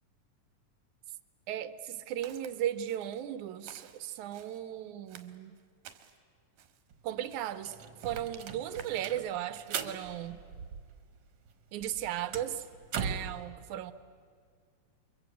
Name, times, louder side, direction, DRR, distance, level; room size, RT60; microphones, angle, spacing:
voice 1, 1.5-5.6 7.0-7.8 8.0-10.4 11.7-12.6 12.9-13.9, right 11 dB, 70° right, 13 dB, 2.1 m, -36 dB
Walk footsteps, 2.2-2.5 2.9-3.3 3.6-4.6 5.1-6.2 6.6-6.9 7.3-7.6 8.0-9.1 9.5-9.8, right 9 dB, 90° right, 3.1 m, -53 dB
sound 1, 6.9-7.0 7.3-11.2 11.5-13.4, right 7 dB, 55° right, 1.9 m, -40 dB
30.0 x 23.0 x 8.3 m, 2.1 s
omnidirectional pair, 3.9 m